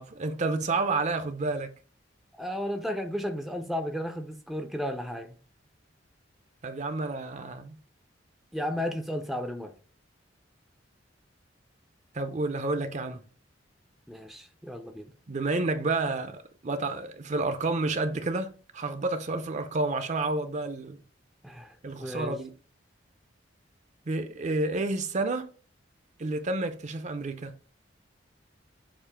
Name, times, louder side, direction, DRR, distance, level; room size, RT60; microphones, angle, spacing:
voice 1, 0.0-1.7 6.6-7.8 12.1-13.2 15.3-21.0 21.8-22.5 24.1-25.5 26.2-27.5, right 3 dB, 40° right, 0.6 m, -30 dB
voice 2, 2.4-5.4 8.5-9.7 14.1-15.1 21.4-21.7 22.0-22.4, equal, ahead, 0.6 m, -33 dB
7.3 x 2.6 x 5.0 m
head